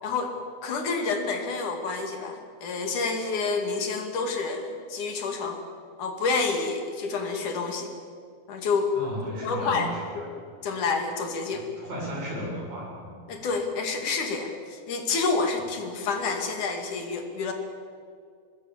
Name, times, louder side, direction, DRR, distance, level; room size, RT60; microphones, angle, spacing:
voice 1, 0.0-0.4 0.6-5.6 6.0-7.9 8.5-8.9 9.2-10.3 10.6-11.6 13.3-17.5, left 4 dB, 70° left, 5 dB, 3.9 m, -29 dB
voice 2, 9.0-10.3 11.5-13.2, equal, 65° right, -3 dB, 9.0 m, -35 dB
25.0 x 21.0 x 7.3 m, 2.2 s
omnidirectional pair, 3.6 m